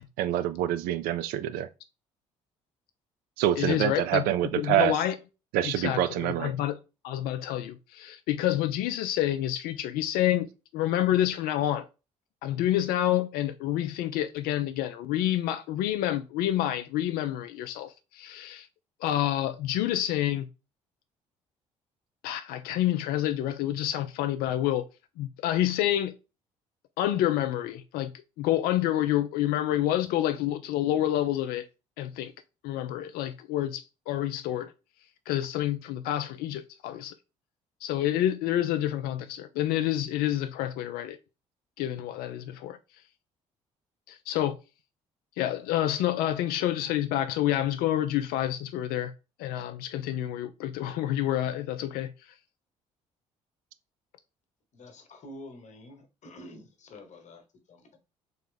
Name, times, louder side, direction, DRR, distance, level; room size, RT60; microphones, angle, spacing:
voice 1, 0.2-1.7 3.4-5.0 5.5-6.5, right 12 dB, 65° right, 0.4 m, -26 dB
voice 2, 3.6-4.2 4.6-5.2 5.6-6.8 7.0-10.5 10.7-11.8 12.4-18.7 19.0-20.5 22.2-24.8 25.2-26.1 27.0-28.1 28.4-31.7 32.0-32.3 32.6-34.7 35.3-37.1 37.8-41.2 41.8-42.8 44.1-44.6 45.4-49.1 49.4-52.1, left 12 dB, 65° left, 0.4 m, -28 dB
voice 3, 54.7-58.0, left 1 dB, 45° left, 1.1 m, -48 dB
3.5 x 2.8 x 3.8 m
hypercardioid pair, 50°, 16 cm